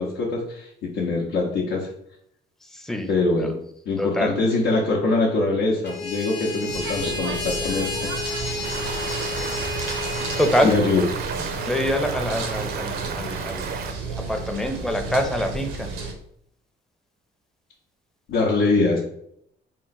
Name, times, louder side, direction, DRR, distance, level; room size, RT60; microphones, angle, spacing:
voice 1, 0.0-1.9 3.1-3.6 3.9-8.1 8.6-8.7 10.6-11.0 18.3-19.0, left 3 dB, 85° left, -4 dB, 0.7 m, -23 dB
voice 2, 2.6-3.1 3.4-3.5 4.0-4.3 10.4-10.7 11.7-13.8 14.2-15.9, equal, ahead, 4 dB, 0.5 m, -25 dB
sound 1, 5.8-10.5, left 4 dB, 60° left, 0.9 m, -31 dB
sound 2, 6.7-16.1, right 4 dB, 90° right, 0.7 m, -32 dB
Stream, 8.6-13.9, right 6 dB, 50° right, 0.5 m, -33 dB
3.7 x 2.1 x 4.0 m, 0.71 s
cardioid pair, 90°, 20 cm